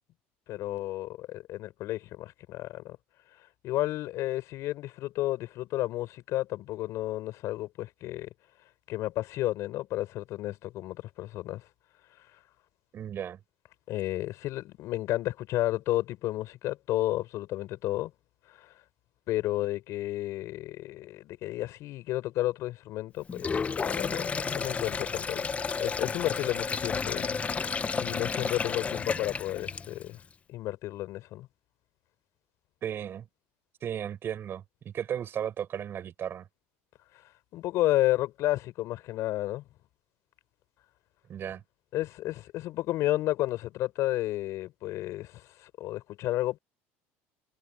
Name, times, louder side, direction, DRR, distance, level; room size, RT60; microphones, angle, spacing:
voice 1, 0.5-3.0 3.6-8.3 8.9-11.6 13.9-18.1 18.5-18.7 19.3-25.5 25.8-27.3 27.6-30.2 30.5-31.5 37.1-37.2 37.5-39.6 41.9-46.6, left 15 dB, 60° left, 5.9 m, -32 dB
voice 2, 12.9-13.4 32.8-33.3 33.8-36.5 41.3-41.6, right 9 dB, 40° right, 6.7 m, -35 dB
Sink (filling or washing), 23.3-30.1, left 5 dB, 25° left, 0.7 m, -32 dB
supercardioid pair, 105°, 6 cm